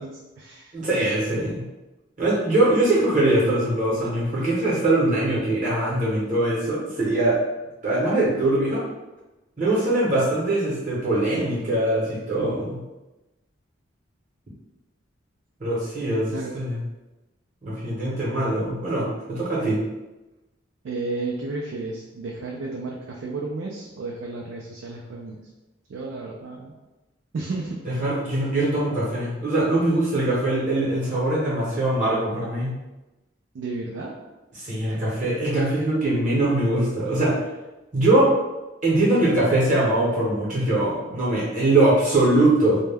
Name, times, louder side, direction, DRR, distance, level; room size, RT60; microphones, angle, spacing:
voice 1, 0.0-0.9 16.3-16.5 20.8-25.4 25.9-26.7 27.3-27.8 33.5-34.2, right 3 dB, 75° right, -1 dB, 0.3 m, -32 dB
voice 2, 0.7-1.6 2.2-7.4 7.8-8.8 9.6-12.8 15.6-16.8 17.6-19.8 27.8-32.8 34.6-37.4 37.9-38.3 38.8-42.8, right 1 dB, 40° right, -6 dB, 0.8 m, -22 dB
2.2 x 2.1 x 3.3 m, 1.1 s
head